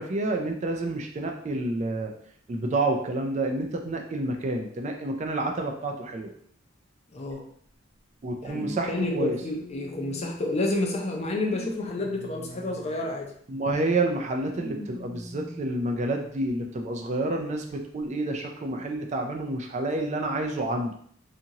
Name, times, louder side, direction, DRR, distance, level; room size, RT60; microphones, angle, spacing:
voice 1, 0.0-2.1 2.5-6.3 8.2-9.4 13.5-20.9, right 2 dB, 35° right, 3 dB, 0.4 m, -29 dB
voice 2, 7.1-7.4 8.4-13.3, left 2 dB, 35° left, 1 dB, 0.5 m, -29 dB
sound 1, 7.3-7.4 8.5-10.6 11.1-13.2 14.3-15.8 16.5-16.6 17.7-17.8, left 1 dB, 75° left, 1.0 m, -41 dB
2.8 x 2.5 x 2.7 m, 0.62 s
head